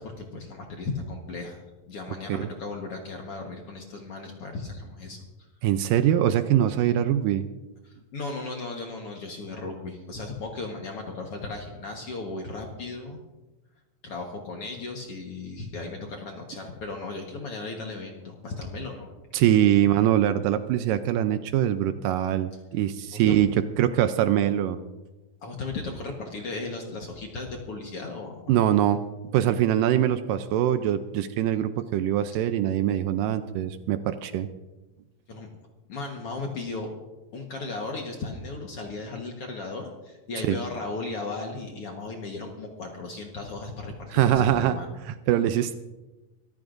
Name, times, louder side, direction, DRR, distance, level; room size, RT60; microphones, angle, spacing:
voice 1, 0.0-1.6 1.9-5.5 7.8-13.2 14.0-19.1 23.1-23.4 25.4-28.6 35.3-35.5 35.9-36.9 37.3-45.0, left 3 dB, 55° left, 1 dB, 1.8 m, -36 dB
voice 2, 5.6-7.4 19.3-24.8 28.5-29.0 29.3-34.5 40.5-40.6 44.1-44.8 45.1-45.7, right 11 dB, 80° right, 10 dB, 2.1 m, -23 dB
24.5 x 14.5 x 2.6 m, 1.1 s
omnidirectional pair, 4.1 m